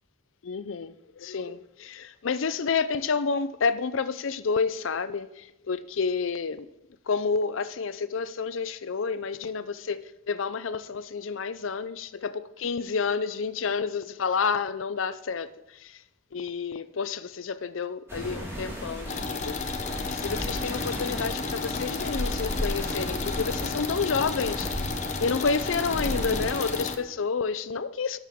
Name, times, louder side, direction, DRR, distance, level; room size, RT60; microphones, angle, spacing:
voice 1, 0.4-6.7 7.1-16.0 16.3-19.6 20.0-24.8 25.2-28.2, left 5 dB, 80° left, 0.5 m, -30 dB
sound 1, 18.1-26.9, equal, 15° right, 2.5 m, -34 dB
sound 2, 19.1-27.0, left 5 dB, 40° left, 0.8 m, -33 dB
18.5 x 6.5 x 3.6 m
head